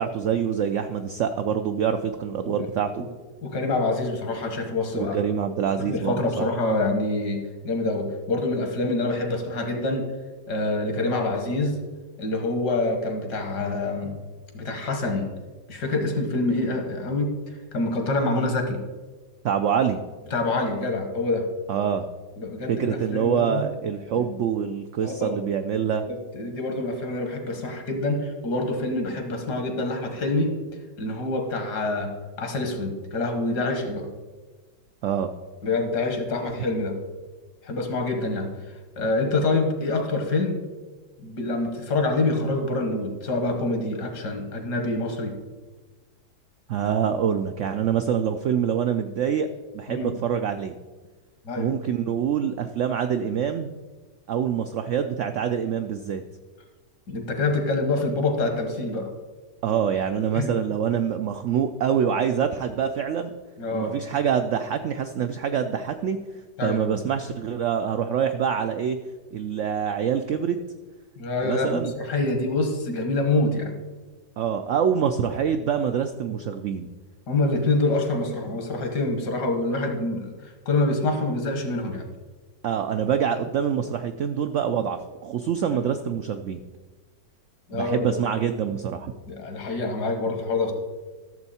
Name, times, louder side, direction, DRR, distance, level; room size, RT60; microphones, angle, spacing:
voice 1, 0.0-3.0 4.9-6.4 19.4-20.0 21.7-22.0 22.7-26.0 35.0-35.3 46.7-49.5 49.7-50.7 51.6-53.8 54.3-56.2 59.6-63.3 63.7-66.2 66.6-69.0 69.3-70.6 71.4-71.9 74.4-76.9 82.6-86.6 87.7-89.1, right 8 dB, 85° right, 8 dB, 0.6 m, -25 dB
voice 2, 3.4-5.2 5.8-10.1 10.5-11.8 12.2-14.1 14.5-15.3 15.7-17.3 17.7-18.8 20.3-21.4 22.4-23.6 24.2-24.3 25.0-25.4 26.1-30.5 31.0-32.1 32.4-34.1 35.6-37.0 37.6-38.5 39.0-40.6 41.2-45.3 49.9-50.1 51.5-51.7 57.1-59.1 60.3-60.6 63.6-63.9 66.6-67.0 71.2-73.7 77.3-82.1 87.7-88.2 89.3-90.7, left 2 dB, 70° left, 4 dB, 2.0 m, -26 dB
12.5 x 7.0 x 4.2 m, 1.3 s
omnidirectional pair, 1.8 m